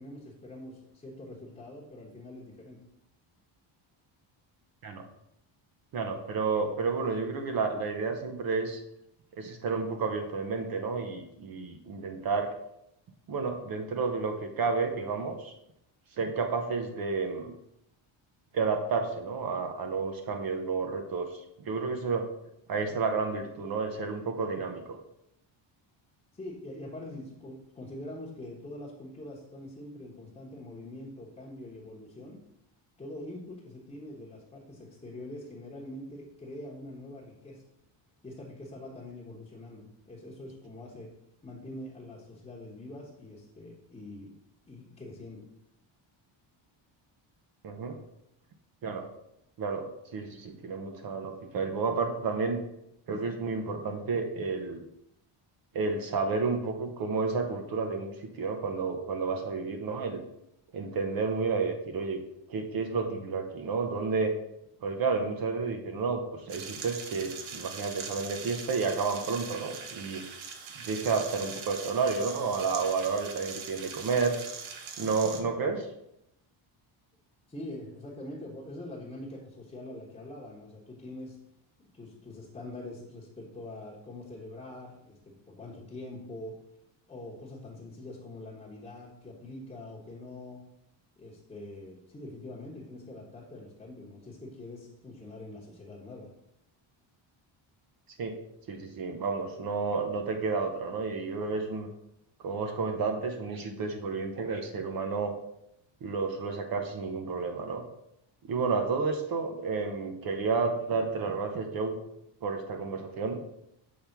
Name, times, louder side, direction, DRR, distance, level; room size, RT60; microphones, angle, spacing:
voice 1, 0.0-2.8 26.3-32.4 33.0-37.6 38.2-41.1 41.4-44.4 44.7-45.4 77.5-81.4 81.8-86.5 87.1-90.6 91.2-96.3, left 1 dB, 10° left, -8 dB, 1.0 m, -44 dB
voice 2, 5.9-8.8 9.4-12.5 13.3-15.5 16.2-17.5 18.5-21.3 21.6-22.3 22.7-25.0 47.6-48.0 48.8-49.1 49.6-52.6 53.1-54.8 55.7-60.2 60.7-62.2 62.5-64.3 64.8-70.3 70.8-74.4 75.0-75.9 98.2-98.4 98.7-101.9 102.4-105.3 106.0-107.8 108.4-112.0 112.4-113.4, right 4 dB, 45° right, 5 dB, 0.8 m, -31 dB
sound 1, 66.5-75.4, right 6 dB, 70° right, 1.0 m, -42 dB
6.6 x 3.5 x 5.8 m, 0.80 s
cardioid pair, 170°, 49 cm